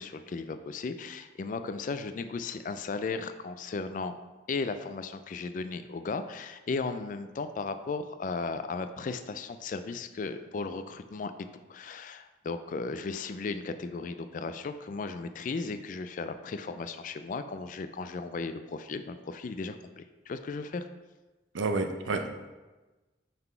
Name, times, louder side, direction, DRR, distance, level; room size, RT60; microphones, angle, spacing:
voice 1, 0.0-4.1 4.5-11.3 11.7-20.9, left 4 dB, 45° left, 10 dB, 0.3 m, -36 dB
voice 2, 21.5-22.5, right 3 dB, 90° right, 6 dB, 0.6 m, -30 dB
5.6 x 3.9 x 4.4 m, 1.2 s
head